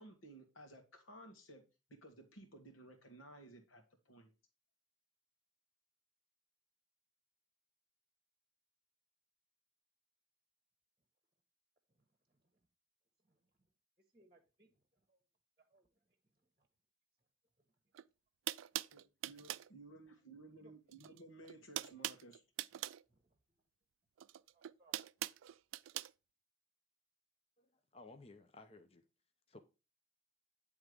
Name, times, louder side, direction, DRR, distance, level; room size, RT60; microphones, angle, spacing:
voice 1, 0.0-4.3 18.9-22.4, right 2 dB, 90° left, 1.8 m, -57 dB
voice 2, 14.1-14.7 15.1-15.2 15.7-15.9 16.6-16.7 20.6-20.7 21.0-21.1 23.1-23.3 24.5-25.0, right 1 dB, 25° right, 1.0 m, -68 dB
sound 1, 17.9-18.0 18.5-19.7 20.9-21.2 21.4-23.0 24.2-26.1, right 14 dB, 80° right, 0.3 m, -42 dB
voice 3, 27.6-29.0 29.5-29.6, left 3 dB, 30° left, 0.6 m, -57 dB
9.6 x 3.5 x 5.0 m
head